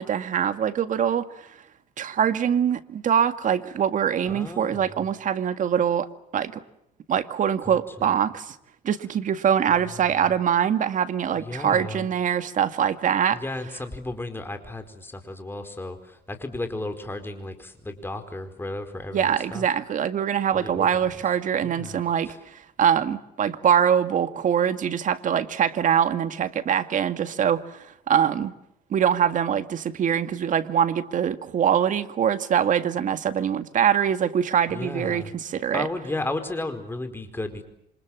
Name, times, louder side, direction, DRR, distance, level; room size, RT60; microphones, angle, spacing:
voice 1, 0.0-1.5 2.0-6.1 6.3-6.6 7.1-8.6 8.8-13.4 19.1-28.5 28.9-35.9, right 8 dB, 50° right, 10 dB, 2.0 m, -23 dB
voice 2, 4.3-5.1 7.7-7.8 9.9-10.2 11.4-12.1 13.3-19.7 20.5-20.9 21.6-22.4 34.7-35.3 35.7-37.6, left 2 dB, 15° left, 7 dB, 4.8 m, -34 dB
28.0 x 26.0 x 7.4 m, 0.78 s
cardioid pair, 110°, 17 cm